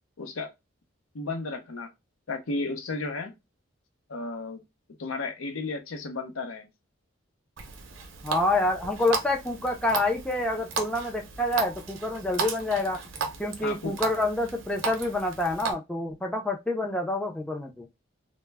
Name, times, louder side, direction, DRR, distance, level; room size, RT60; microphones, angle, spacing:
voice 1, 0.2-0.5 1.1-1.9 2.3-3.4 4.1-4.6 5.0-6.7 13.6-13.9, left 3 dB, 80° left, 0.6 m, -33 dB
Water tap faucet, 7.6-15.7, right 4 dB, 75° right, 0.6 m, -35 dB
voice 2, 8.2-13.0 13.4-17.9, left 2 dB, 5° left, 0.3 m, -27 dB
2.1 x 2.0 x 3.3 m
head